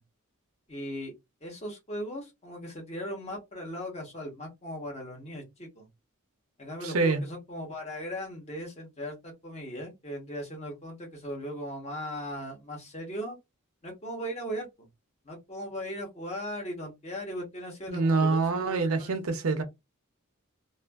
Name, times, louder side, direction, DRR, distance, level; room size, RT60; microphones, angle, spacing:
voice 1, 0.7-1.1 1.4-5.9 6.6-13.4 13.8-14.9 15.2-19.1, equal, 30° left, 1.1 m, -38 dB
voice 2, 6.8-7.2 17.9-19.6, right 3 dB, 85° right, 0.7 m, -26 dB
2.6 x 2.5 x 2.3 m
head